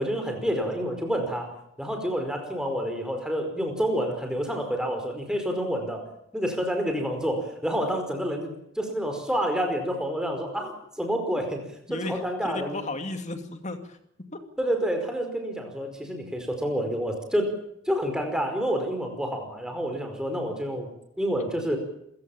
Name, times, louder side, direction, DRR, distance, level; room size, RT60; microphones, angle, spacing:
voice 1, 0.0-1.5 1.8-6.1 6.3-11.6 11.9-12.8 14.6-17.5 17.8-20.9 21.2-21.8, equal, 5° right, 4 dB, 4.9 m, -28 dB
voice 2, 11.9-14.0 14.3-14.4, left 2 dB, 35° left, 7 dB, 2.6 m, -34 dB
27.5 x 16.0 x 7.2 m, 0.74 s
head